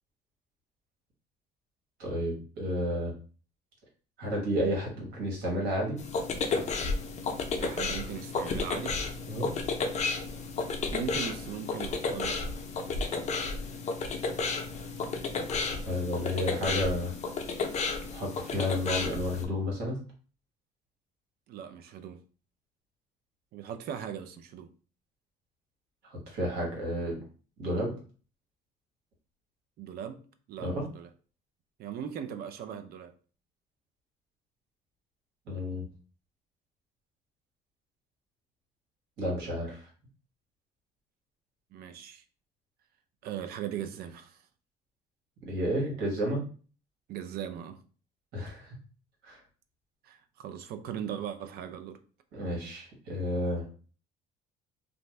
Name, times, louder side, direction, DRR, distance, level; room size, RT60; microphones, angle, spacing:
voice 1, 2.0-3.1 4.2-6.0 9.3-9.5 15.8-17.2 18.1-20.0 26.0-27.2 27.6-27.9 30.6-30.8 35.5-35.9 39.2-39.9 45.4-46.4 48.3-48.7 49.2-49.4 52.3-53.6, equal, 80° right, -2 dB, 1.3 m, -31 dB
sound 1, 6.0-19.5, left 4 dB, 40° left, 0.5 m, -32 dB
voice 2, 7.6-9.0 10.9-12.4 21.5-22.2 23.5-24.7 29.8-31.1 31.8-33.1 41.7-42.2 43.2-44.4 47.1-47.8 50.0-52.0, right 9 dB, 65° right, 9 dB, 0.4 m, -39 dB
2.5 x 2.2 x 3.1 m, 0.39 s
cardioid pair, 110°, 17 cm